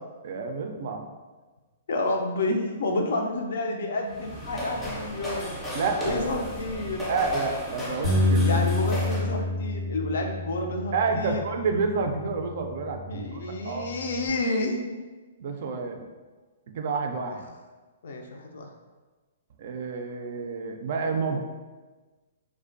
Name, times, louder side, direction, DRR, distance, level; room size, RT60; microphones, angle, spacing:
voice 1, 0.2-1.1 5.7-6.7 7.1-8.6 10.9-13.9 15.4-16.1 16.7-17.5 19.6-21.4, right 4 dB, 60° right, 4 dB, 0.3 m, -29 dB
voice 2, 1.9-5.5 6.0-7.0 8.4-11.4 13.1-15.0 17.3-17.4 18.0-18.7, left 2 dB, 70° left, 2 dB, 0.4 m, -29 dB
sound 1, 4.0-9.4, left 1 dB, 10° left, 0.5 m, -35 dB
Bass guitar, 8.0-14.3, left 2 dB, 85° left, 0.9 m, -29 dB
2.4 x 2.1 x 2.4 m, 1.3 s
hypercardioid pair, 125°, 0 cm